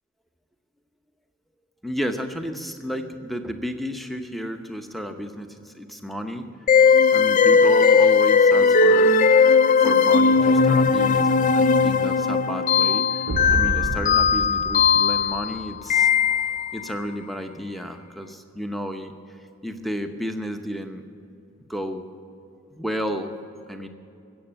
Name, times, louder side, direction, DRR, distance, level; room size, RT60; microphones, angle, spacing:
voice 1, 1.8-6.5 6.9-9.1 9.8-16.1 16.7-19.4 19.6-21.0 21.7-22.0 22.7-23.3 23.7-23.9, equal, ahead, 6 dB, 0.7 m, -32 dB
sound 1, 6.7-16.8, left 5 dB, 35° left, 0.3 m, -18 dB
sound 2, 13.3-15.9, right 2 dB, 80° right, 0.7 m, -30 dB
16.0 x 7.7 x 8.8 m, 2.6 s
head